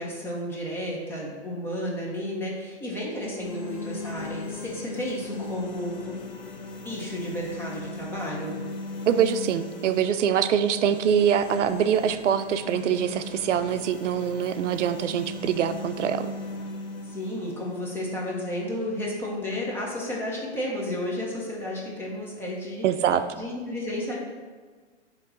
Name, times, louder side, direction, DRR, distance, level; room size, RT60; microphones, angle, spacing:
voice 1, 0.0-6.2 6.8-8.6 17.0-22.8 23.3-24.2, left 1 dB, 5° left, -3 dB, 0.8 m, -32 dB
sound 1, 3.1-19.1, left 2 dB, 40° left, 0.9 m, -38 dB
voice 2, 9.1-16.3 22.8-23.2, right 9 dB, 80° right, 11 dB, 0.5 m, -24 dB
8.3 x 3.0 x 3.9 m, 1.4 s
hypercardioid pair, 140°, 35 cm